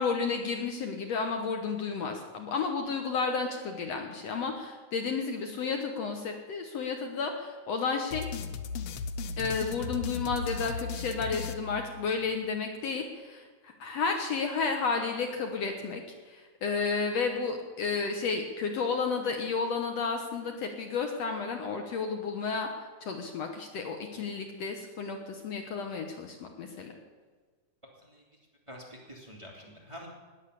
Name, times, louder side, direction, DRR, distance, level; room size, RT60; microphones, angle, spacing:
voice 1, 0.0-8.3 9.4-16.0 16.3-26.9, left 5 dB, 65° left, 4 dB, 2.2 m, -32 dB
sound 1, 8.1-12.4, left 5 dB, 80° left, 1.2 m, -36 dB
voice 2, 28.7-30.1, equal, 10° right, -2 dB, 2.5 m, -47 dB
19.5 x 7.5 x 8.3 m, 1.4 s
omnidirectional pair, 3.5 m